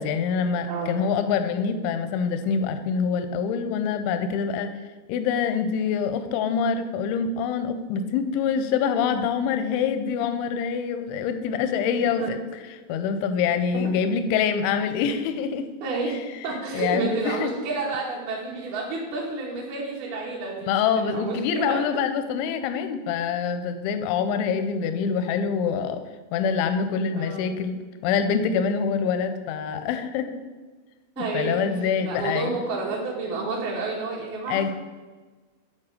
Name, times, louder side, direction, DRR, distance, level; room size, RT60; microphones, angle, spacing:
voice 1, 0.0-4.7 5.1-12.4 12.9-15.7 16.7-17.5 20.6-26.0 26.3-27.8 28.0-30.3 31.2-32.6 34.5-34.7, left 6 dB, 90° left, 9 dB, 3.0 m, -25 dB
voice 2, 0.7-1.1 12.2-12.3 13.7-13.8 15.8-16.2 16.4-20.7 21.1-21.9 27.1-27.4 31.2-31.6 32.0-34.7, right 3 dB, 70° right, -4 dB, 2.7 m, -30 dB
9.9 x 4.3 x 6.4 m, 1.3 s
omnidirectional pair, 5.2 m